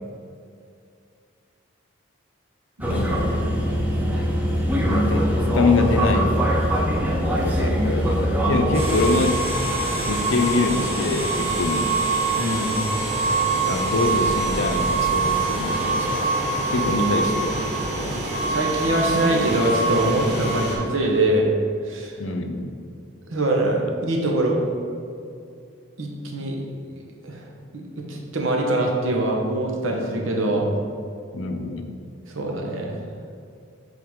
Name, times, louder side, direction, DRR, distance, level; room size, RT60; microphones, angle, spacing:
sound 1, 2.8-9.1, equal, 10° right, 0.7 m, -22 dB
voice 1, 2.9-3.4 4.7-5.3 5.5-6.4 7.4-9.4 10.0-11.9 13.7-16.2 16.7-17.6 18.0-18.2 22.2-22.7 31.3-32.0, left 3 dB, 70° left, 5 dB, 0.6 m, -24 dB
sound 2, 8.7-20.8, right 3 dB, 30° right, 1.2 m, -24 dB
voice 2, 12.4-12.7 18.5-21.5 21.8-22.1 23.3-24.6 26.0-26.6 27.2-27.4 27.7-27.8 28.1-30.7 32.3-33.0, right 1 dB, 75° right, 0 dB, 1.0 m, -23 dB
7.8 x 3.9 x 3.6 m, 2.4 s
head